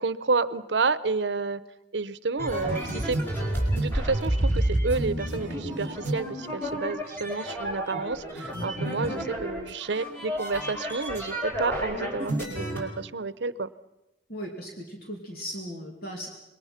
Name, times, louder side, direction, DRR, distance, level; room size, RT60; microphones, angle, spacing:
voice 1, 0.0-1.6 1.9-3.2 3.8-13.7, right 4 dB, 70° right, 16 dB, 0.8 m, -30 dB
sound 1, 2.4-12.8, right 1 dB, 15° left, 5.1 m, -30 dB
voice 2, 14.3-16.3, equal, 55° left, 0 dB, 2.8 m, -37 dB
26.5 x 22.0 x 5.9 m, 0.94 s
head